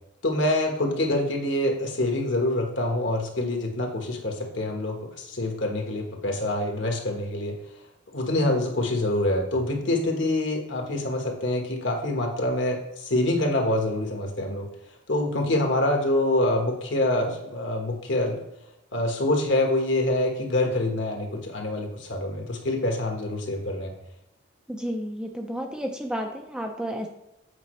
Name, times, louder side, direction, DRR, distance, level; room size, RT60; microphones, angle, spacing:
voice 1, 0.2-7.6 8.1-14.6 15.1-18.4 18.9-23.9, left 1 dB, 65° left, 1 dB, 1.4 m, -26 dB
voice 2, 24.7-27.1, equal, 5° right, 2 dB, 0.5 m, -31 dB
8.2 x 5.1 x 3.2 m, 0.87 s
head